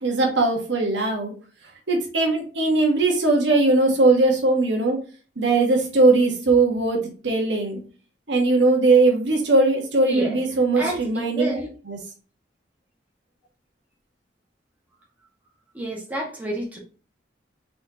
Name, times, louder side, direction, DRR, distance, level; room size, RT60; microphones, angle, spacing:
voice 1, 0.0-1.3 1.9-5.0 5.4-7.8 8.3-11.5 11.9-12.0, right 2 dB, 70° right, 1.3 m, -20 dB
voice 2, 10.0-10.4 10.7-11.7 15.7-16.8, right 1 dB, 10° right, 1.5 m, -30 dB
4.3 x 4.2 x 2.8 m
head